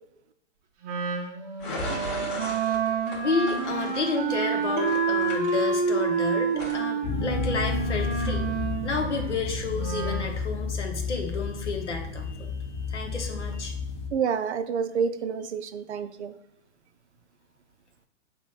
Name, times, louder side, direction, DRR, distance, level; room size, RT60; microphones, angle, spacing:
Wind instrument woodwind instrument, 0.8-10.3, right 5 dB, 30° right, 0.8 m, -28 dB
sound 1, 1.6-6.2 6.5-6.8, left 1 dB, 40° left, 1.6 m, -37 dB
voice 1, 3.1-8.4 8.7-12.5 12.9-13.7, left 4 dB, 75° left, 3 dB, 1.0 m, -31 dB
sound 2, 7.0-14.1, left 4 dB, 20° left, 0.7 m, -31 dB
voice 2, 14.1-16.3, right 6 dB, 70° right, 11 dB, 0.5 m, -28 dB
7.0 x 3.0 x 2.4 m, 0.83 s
figure-of-eight pair, 110°, 36 cm